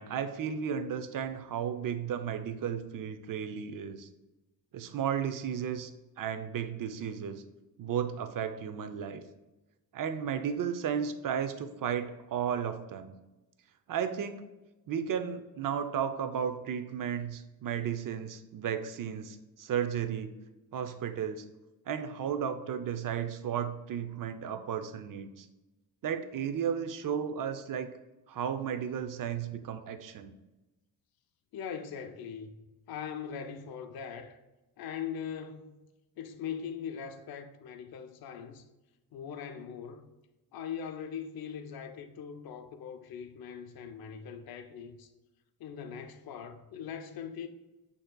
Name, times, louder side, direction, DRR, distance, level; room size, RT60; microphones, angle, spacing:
voice 1, 0.0-4.1 4.7-5.9 6.2-7.4 7.8-9.2 9.9-13.1 13.9-14.4 14.9-20.3 20.7-21.5 21.9-25.5 26.0-27.9 28.3-30.3, right 8 dB, 55° right, 0.5 m, -34 dB
voice 2, 31.5-34.4 34.8-35.8 36.2-38.6 39.1-40.1 40.5-45.1 45.6-47.5, left 7 dB, 60° left, 0.5 m, -41 dB
6.4 x 2.8 x 2.2 m
cardioid pair, 75°, 40 cm